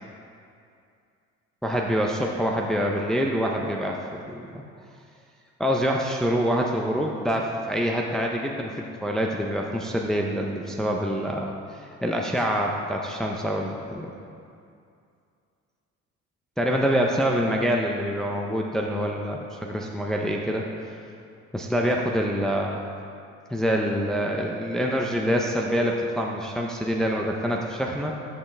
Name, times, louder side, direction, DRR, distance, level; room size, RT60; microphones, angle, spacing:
voice 1, 1.6-4.0 4.3-4.6 5.6-8.8 9.0-14.1 16.6-20.7 21.5-22.8 23.5-28.1, equal, ahead, -1 dB, 0.6 m, -26 dB
13.0 x 5.7 x 3.3 m, 2.5 s
supercardioid pair, 90°, 30 cm